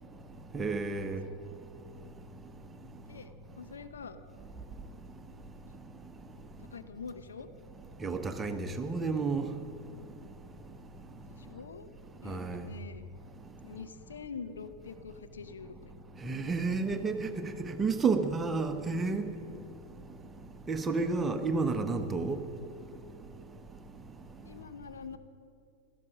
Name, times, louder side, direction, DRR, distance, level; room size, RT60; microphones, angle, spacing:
voice 1, 0.5-1.2 8.0-9.5 12.2-12.6 16.2-19.3 20.7-22.4, right 4 dB, 15° right, 7 dB, 1.0 m, -31 dB
voice 2, 3.1-4.2 6.7-7.5 11.3-11.9 12.2-13.1 13.6-15.9 24.4-25.2, left 5 dB, 70° left, 9 dB, 0.8 m, -45 dB
17.0 x 12.5 x 6.3 m, 2.6 s
figure-of-eight pair, 90°, 0 cm